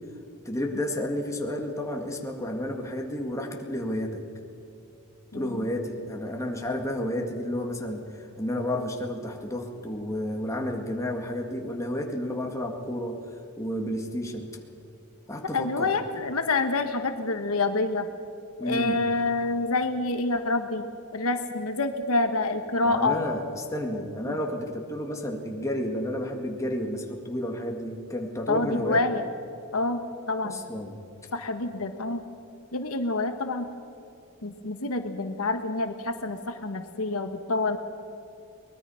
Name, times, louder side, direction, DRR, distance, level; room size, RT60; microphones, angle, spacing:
voice 1, 0.5-4.2 5.3-13.2 13.6-14.6 15.3-15.9 18.6-19.0 22.8-29.1 30.4-31.0, left 1 dB, 15° left, 2 dB, 1.9 m, -31 dB
voice 2, 5.3-5.7 15.5-18.1 18.6-20.8 21.1-23.2 24.2-24.3 28.5-29.2 29.7-30.6 31.3-32.2 32.7-33.7 34.4-37.8, left 2 dB, 70° left, 7 dB, 1.2 m, -27 dB
23.0 x 20.5 x 5.7 m, 2.6 s
head